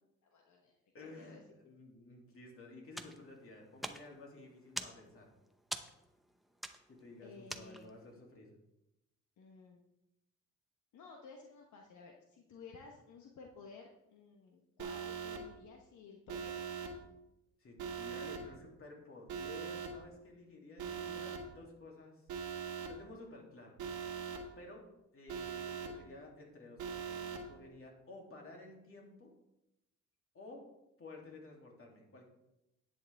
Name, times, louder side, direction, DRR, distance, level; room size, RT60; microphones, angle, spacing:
voice 1, 0.2-0.7 1.0-1.4 7.2-8.0 9.4-9.8 10.9-16.5, left 4 dB, 70° left, 1 dB, 1.2 m, -55 dB
voice 2, 0.9-5.3 6.9-8.5 17.6-22.3 22.8-23.8 24.6-24.8 25.1-29.3 30.3-30.6 31.0-32.3, left 2 dB, 45° left, -1 dB, 2.9 m, -53 dB
sound 1, 2.9-8.1, equal, ahead, 0.7 m, -46 dB
Alarm, 14.8-15.4 16.3-16.9 17.8-18.4 19.3-19.9 20.8-21.4 22.3-22.9 23.8-24.4 25.3-25.9 26.8-27.4, right 7 dB, 90° right, 1.6 m, -41 dB
10.5 x 8.7 x 3.5 m, 0.90 s
cardioid pair, 90°, 30 cm